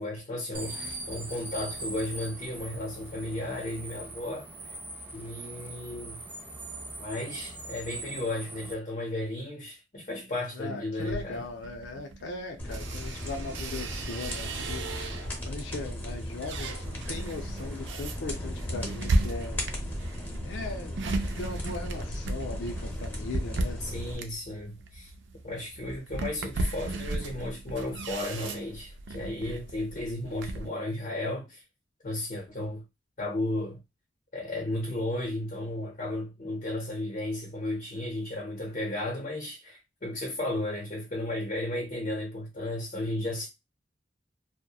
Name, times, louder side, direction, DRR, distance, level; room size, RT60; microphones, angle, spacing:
voice 1, 0.0-4.7 5.1-6.2 7.0-11.5 23.8-25.1 25.4-31.6 32.0-32.8 33.2-33.8 34.3-43.5, left 1 dB, 45° left, 0.7 m, -34 dB
sound 1, 0.5-8.7, right 2 dB, 10° right, 0.3 m, -41 dB
voice 2, 10.5-19.7 20.4-20.9 21.4-23.8, left 3 dB, 90° left, 0.5 m, -39 dB
sound 2, 11.0-15.5 16.0-30.7, right 2 dB, 80° right, 0.4 m, -35 dB
sound 3, 12.6-24.2, left 1 dB, 10° left, 0.8 m, -36 dB
2.8 x 2.1 x 2.2 m
head